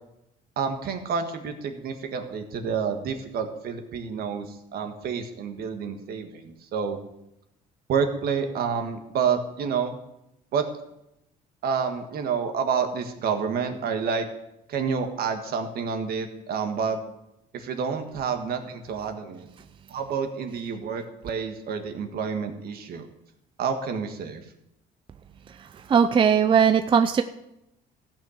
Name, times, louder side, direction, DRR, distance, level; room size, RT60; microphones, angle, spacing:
voice 1, 0.6-7.0 7.9-10.0 10.5-10.6 11.6-14.3 14.7-17.0 17.5-19.5 19.9-23.1 23.6-24.4, right 6 dB, 65° right, 6 dB, 1.6 m, -29 dB
voice 2, 25.9-27.2, right 7 dB, 30° right, 10 dB, 0.5 m, -19 dB
14.5 x 6.0 x 6.5 m, 0.84 s
cardioid pair, 110°, 17 cm